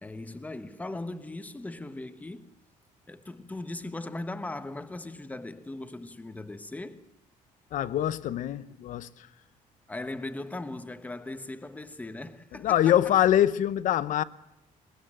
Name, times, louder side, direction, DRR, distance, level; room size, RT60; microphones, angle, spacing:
voice 1, 0.0-2.5 3.1-7.1 9.9-13.1, left 2 dB, 10° left, 1.1 m, -39 dB
voice 2, 7.7-9.3 12.6-14.2, left 11 dB, 60° left, 0.9 m, -24 dB
23.0 x 20.5 x 7.5 m
cardioid pair, 140°, 15 cm